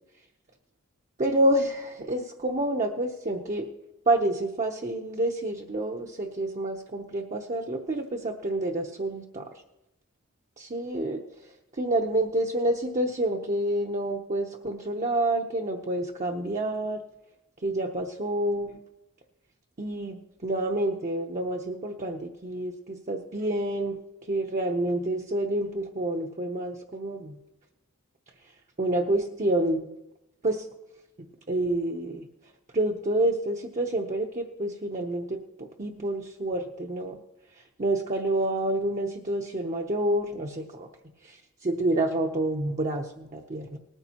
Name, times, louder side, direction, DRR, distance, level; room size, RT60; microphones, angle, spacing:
voice 1, 1.2-3.7 4.1-9.5 10.6-11.2 11.7-17.0 17.6-18.8 19.8-24.0 24.3-27.4 28.8-29.9 30.4-30.7 31.2-32.3 32.7-37.2 37.6-40.9 41.2-43.8, right 1 dB, 35° right, 2 dB, 0.7 m, -28 dB
19.0 x 13.5 x 2.9 m, 0.96 s
head